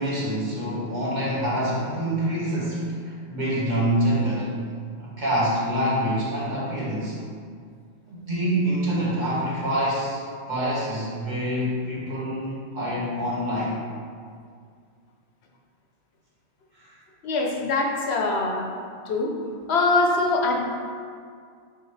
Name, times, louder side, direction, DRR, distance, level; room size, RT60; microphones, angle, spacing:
voice 1, 0.0-4.5 5.0-7.2 8.1-10.2 10.5-13.8 16.7-17.0, right 1 dB, 45° right, -7 dB, 1.6 m, -26 dB
voice 2, 17.2-18.7 19.1-19.3 19.7-20.6, left 3 dB, 75° left, 1 dB, 1.0 m, -23 dB
5.8 x 5.5 x 3.3 m, 2.1 s
omnidirectional pair, 1.1 m